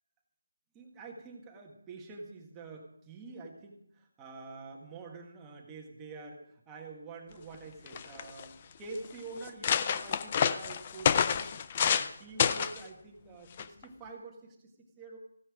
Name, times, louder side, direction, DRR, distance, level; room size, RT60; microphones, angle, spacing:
voice 1, 0.7-14.7 15.0-15.2, right 3 dB, 10° right, 0 dB, 1.7 m, -47 dB
sound 1, 7.5-7.6 7.9-8.4 9.0-9.1 9.4-12.1 12.4-12.8 13.6-13.8, left 8 dB, 25° left, 0.5 m, -28 dB
16.0 x 10.0 x 4.9 m, 0.71 s
figure-of-eight pair, 170°, 0 cm